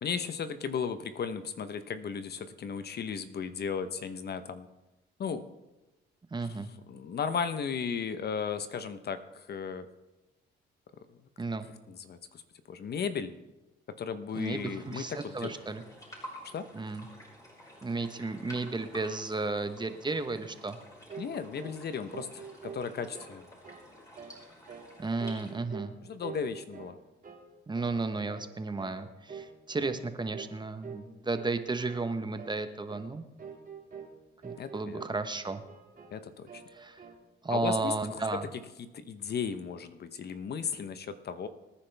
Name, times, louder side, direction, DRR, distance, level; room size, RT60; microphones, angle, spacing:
voice 1, 0.0-4.7 5.2-5.4 6.4-6.6 6.9-9.9 11.1-11.2 11.9-12.4 12.7-13.3 14.0-15.5 16.4-16.6 21.2-23.4 26.0-27.0 34.6-35.0 36.1-36.6 37.5-38.4 38.8-41.5, left 6 dB, 55° left, 10 dB, 1.0 m, -35 dB
voice 2, 6.3-6.7 11.4-11.7 14.3-15.8 16.7-17.1 17.8-20.8 25.0-25.9 27.7-33.2 34.4-35.6 36.7-37.0 37.4-38.4, right 3 dB, 20° right, 9 dB, 1.1 m, -33 dB
sound 1, 14.3-25.5, equal, 15° left, 6.0 m, -51 dB
sound 2, 21.1-21.3 21.6-21.8 22.1-23.3 23.6-23.9 24.1-24.4 24.7-24.9 25.2-25.9 26.2-27.0 27.2-27.5 27.7-28.0 28.3-28.5 28.8-29.0 29.3-29.5 29.8-30.0 30.3-30.5 30.8-31.1 31.3-31.5 31.9-32.1 32.4-32.6 32.9-33.1 33.4-34.1 34.4-35.2 35.4-36.2 36.5-37.2, right 6 dB, 45° right, 2.6 m, -46 dB
24.5 x 10.0 x 3.5 m, 1.0 s
cardioid pair, 90°, 20 cm